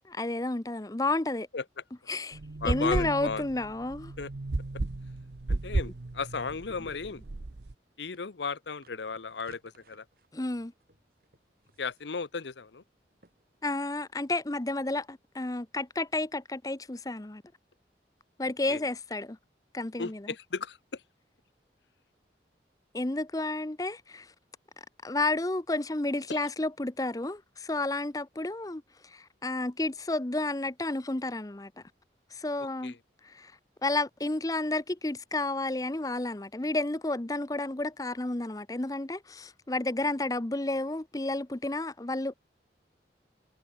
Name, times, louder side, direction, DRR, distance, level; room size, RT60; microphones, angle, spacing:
voice 1, 0.0-1.5 2.1-2.4 2.6-4.1 10.3-10.7 13.6-17.4 18.4-19.4 19.7-20.3 22.9-24.3 25.0-31.7 32.3-33.0 33.2-33.5 33.8-42.3, left 2 dB, 20° left, 0.7 m, -31 dB
sound 1, 2.3-7.7, right 2 dB, 80° right, 0.9 m, -34 dB
voice 2, 2.6-3.4 4.2-4.3 5.5-7.2 8.0-10.0 11.8-12.8 18.7-18.8 20.0-21.0 26.3-26.4 32.8-33.0, left 4 dB, 85° left, 0.8 m, -35 dB
sound 2, 7.2-15.1, right 2 dB, 55° right, 4.4 m, -65 dB
head